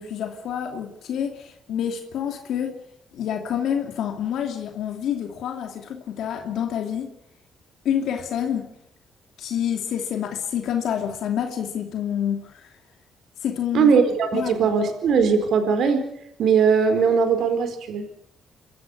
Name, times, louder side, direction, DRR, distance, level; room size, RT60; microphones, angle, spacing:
voice 1, 0.0-2.8 3.1-7.2 7.8-8.7 9.4-12.7 13.4-13.9 14.3-14.5, left 9 dB, 75° left, 4 dB, 2.6 m, -28 dB
voice 2, 13.7-16.1 16.4-18.1, right 6 dB, 70° right, 8 dB, 4.3 m, -20 dB
27.5 x 14.0 x 8.7 m, 0.76 s
cardioid pair, 90°, 0 cm